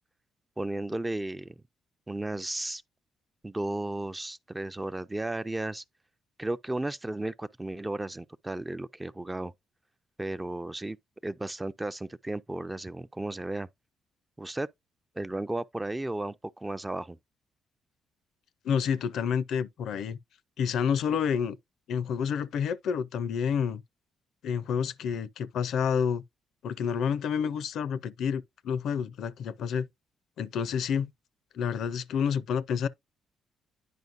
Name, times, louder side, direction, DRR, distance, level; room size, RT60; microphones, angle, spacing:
voice 1, 0.6-1.6 2.1-2.8 3.4-5.8 6.4-9.5 10.2-11.0 11.2-13.7 14.4-14.7 15.2-17.2, right 2 dB, 15° right, 0.4 m, -34 dB
voice 2, 18.6-20.2 20.6-21.6 21.9-23.8 24.4-26.2 26.6-29.9 30.4-31.1 31.5-32.9, left 7 dB, 75° left, 0.5 m, -29 dB
9.4 x 5.2 x 2.5 m
cardioid pair, 90°, 0 cm